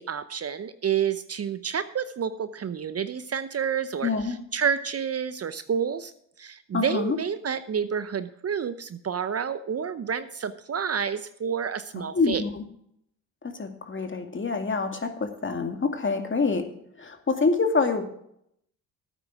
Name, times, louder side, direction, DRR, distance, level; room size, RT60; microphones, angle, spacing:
voice 1, 0.0-6.1 6.4-12.4, right 7 dB, 35° right, 12 dB, 0.8 m, -29 dB
voice 2, 4.0-4.3 6.7-7.2 12.1-12.7 13.4-16.7 17.0-18.0, left 4 dB, 30° left, 5 dB, 2.3 m, -26 dB
13.0 x 9.0 x 4.8 m, 0.72 s
hypercardioid pair, 55°, 40 cm